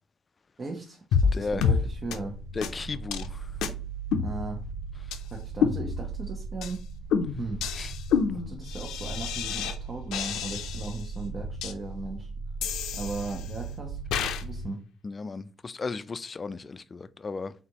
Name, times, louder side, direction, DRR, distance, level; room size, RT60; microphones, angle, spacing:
voice 1, 0.6-2.4 4.2-4.6 5.3-6.9 7.4-7.7 8.3-12.3 12.9-14.8, right 3 dB, 40° right, 0.8 m, -37 dB
sound 1, 1.1-1.3 1.6-1.8 2.1-2.2 2.6-2.7 3.1-3.3 3.6-3.7 4.1-4.8 5.1-5.2 5.6-6.2 6.6-6.8 7.1-9.8 10.1-11.0 11.6-11.7 12.6-13.6 14.1-14.4, left 6 dB, 90° left, 0.5 m, -28 dB
voice 2, 1.3-1.6 2.6-3.5 7.8-8.3 15.0-17.5, left 4 dB, 35° left, 0.3 m, -35 dB
sound 2, 1.4-14.7, right 4 dB, 65° right, 2.1 m, -38 dB
4.1 x 3.5 x 3.0 m
cardioid pair, 90°, 0 cm